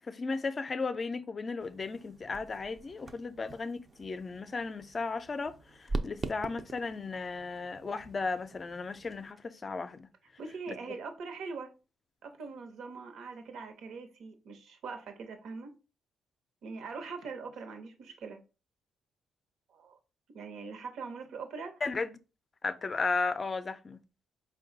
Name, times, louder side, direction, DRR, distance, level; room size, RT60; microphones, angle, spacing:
voice 1, 0.0-10.1 10.7-10.8 21.8-22.2 22.6-24.0, left 4 dB, 35° left, 0.5 m, -35 dB
sound 1, 1.6-9.3, right 2 dB, 35° right, 0.5 m, -43 dB
voice 2, 10.4-11.7 12.2-15.7 16.6-18.4 19.7-20.0 20.3-21.8, right 4 dB, 70° right, 0.9 m, -42 dB
4.4 x 2.2 x 3.9 m
cardioid pair, 90°, 0 cm